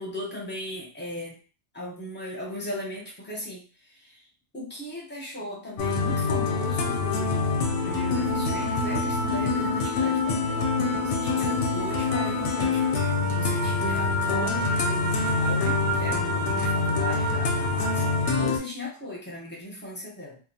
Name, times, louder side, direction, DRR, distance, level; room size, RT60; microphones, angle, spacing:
voice 1, 0.0-1.4 1.7-4.2 4.5-18.1 18.4-20.4, left 1 dB, 10° left, -3 dB, 0.7 m, -37 dB
sound 1, 5.8-18.6, left 3 dB, 90° left, 0.9 m, -25 dB
2.5 x 2.2 x 2.7 m, 0.36 s
omnidirectional pair, 1.1 m